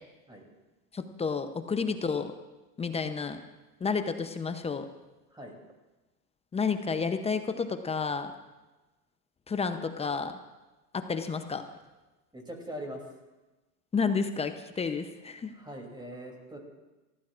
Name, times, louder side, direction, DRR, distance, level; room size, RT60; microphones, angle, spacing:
voice 1, 0.9-2.3 2.8-3.4 3.8-4.9 6.5-8.3 9.5-10.3 10.9-11.6 13.9-15.5, left 5 dB, 15° left, 9 dB, 0.7 m, -30 dB
voice 2, 12.3-13.1 15.5-16.6, equal, 10° right, 1 dB, 3.0 m, -41 dB
30.0 x 14.5 x 2.5 m, 1.1 s
hypercardioid pair, 110°, 49 cm